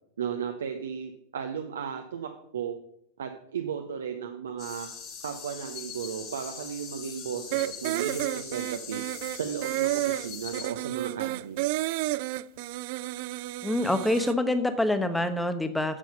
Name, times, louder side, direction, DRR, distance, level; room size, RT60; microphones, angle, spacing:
voice 1, 0.2-2.8 3.2-4.9 5.2-9.0 9.3-11.6, right 7 dB, 65° right, 5 dB, 0.9 m, -35 dB
sound 1, 4.6-10.7, left 6 dB, 40° left, 2.4 m, -42 dB
sound 2, 7.5-14.3, right 18 dB, 50° right, 0.3 m, -31 dB
voice 2, 13.6-16.0, left 1 dB, 5° left, 10 dB, 1.1 m, -26 dB
9.9 x 7.5 x 5.5 m, 0.75 s
figure-of-eight pair, 90°, 0 cm